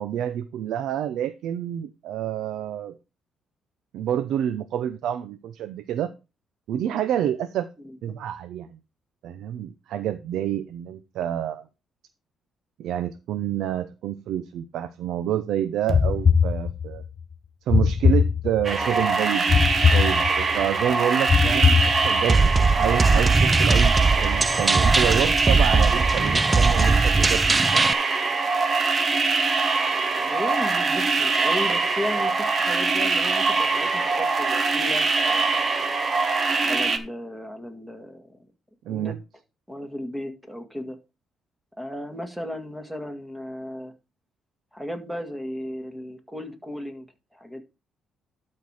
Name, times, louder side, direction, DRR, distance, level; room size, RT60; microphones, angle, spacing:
voice 1, 0.0-3.0 3.9-6.1 6.7-7.7 8.0-8.8 9.2-11.6 12.8-17.0 17.7-19.6 19.9-27.9 38.9-39.2, right 10 dB, 80° right, 12 dB, 0.6 m, -28 dB
voice 2, 7.8-8.1 30.2-35.7 36.6-38.5 38.9-39.2 39.7-41.0 41.8-43.9 44.7-47.1 47.3-47.6, left 1 dB, 5° right, 6 dB, 1.9 m, -35 dB
sound 1, 15.9-17.1 17.7-18.9 19.5-20.7 21.3-22.4, left 6 dB, 45° left, 0.7 m, -21 dB
sound 2, 18.6-37.0, right 4 dB, 40° right, 1.4 m, -23 dB
sound 3, 22.3-27.9, right 3 dB, 25° right, 0.4 m, -20 dB
12.5 x 4.4 x 4.9 m, 0.28 s
cardioid pair, 90°, 0 cm